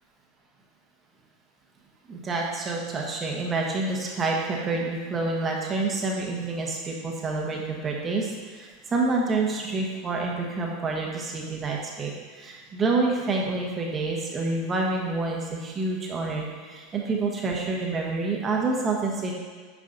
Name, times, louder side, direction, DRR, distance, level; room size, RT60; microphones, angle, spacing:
voice 1, 2.1-19.3, right 3 dB, 20° right, -1 dB, 1.2 m, -28 dB
9.6 x 4.9 x 3.9 m, 1.6 s
supercardioid pair, 140°, 0 cm